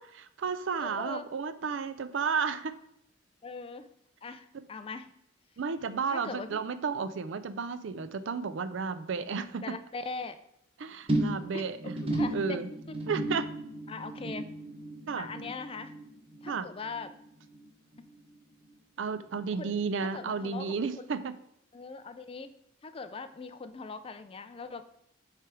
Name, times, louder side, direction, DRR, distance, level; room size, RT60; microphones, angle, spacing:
voice 1, 0.2-2.8 5.6-9.6 10.8-11.9 12.3-12.7 13.1-13.5 15.1-15.3 16.5-16.7 19.0-21.3, right 5 dB, 65° right, 12 dB, 0.4 m, -32 dB
voice 2, 0.8-1.2 3.4-3.9 4.2-5.1 6.1-6.6 9.6-10.4 11.5-11.7 12.0-12.7 13.9-14.5 15.1-15.9 16.4-17.1 18.0-18.1 19.5-19.7 20.0-21.1 21.7-22.5 22.8-24.8, left 4 dB, 25° left, 11 dB, 0.4 m, -41 dB
sound 1, 11.1-17.7 17.9-18.4 18.7-18.8, right 1 dB, 30° right, 0.9 m, -35 dB
7.6 x 3.3 x 4.7 m, 0.74 s
head